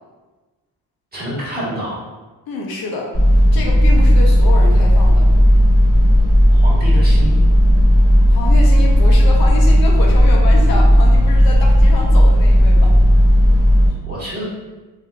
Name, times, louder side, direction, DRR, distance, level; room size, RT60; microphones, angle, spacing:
voice 1, 1.1-2.0 6.5-7.4 14.1-14.4, equal, 20° right, -8 dB, 1.3 m, -27 dB
voice 2, 2.5-3.1 3.5-5.3 8.3-12.9, left 2 dB, 60° left, -1 dB, 0.6 m, -27 dB
sound 1, 3.1-13.9, equal, 20° left, 1.4 m, -12 dB
3.6 x 2.7 x 2.2 m, 1.2 s
cardioid pair, 120°, 41 cm